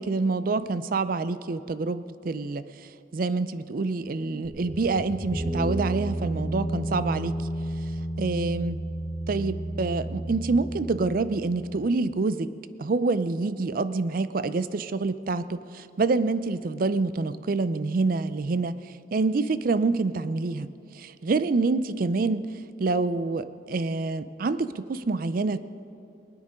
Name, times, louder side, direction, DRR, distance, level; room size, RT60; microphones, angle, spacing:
voice 1, 0.0-2.6 3.1-7.4 8.2-8.8 9.3-12.5 12.8-18.7 19.1-20.7 20.9-22.5 22.8-25.6, right 3 dB, 50° right, 14 dB, 0.4 m, -26 dB
sound 1, 4.4-11.9, right 1 dB, 85° right, 3.7 m, -32 dB
19.0 x 9.7 x 5.1 m, 2.7 s
head